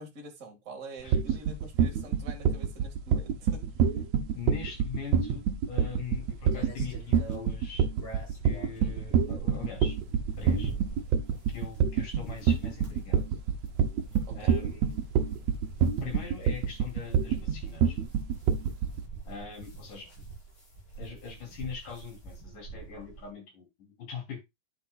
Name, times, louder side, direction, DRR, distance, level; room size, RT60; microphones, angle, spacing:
voice 1, 0.0-3.6 14.2-14.5, right 2 dB, 25° right, 2.1 m, -46 dB
sound 1, 1.1-19.0, right 7 dB, 70° right, 1.9 m, -26 dB
voice 2, 1.8-2.2 4.4-7.9 8.4-10.0 10.4-10.7 11.5-13.3 14.3-15.0 16.0-18.0 19.2-20.1 21.0-24.4, left 6 dB, 80° left, 5.1 m, -42 dB
sound 2, 6.1-23.3, right 4 dB, 40° left, 6.4 m, -45 dB
9.9 x 8.2 x 2.4 m
omnidirectional pair, 3.6 m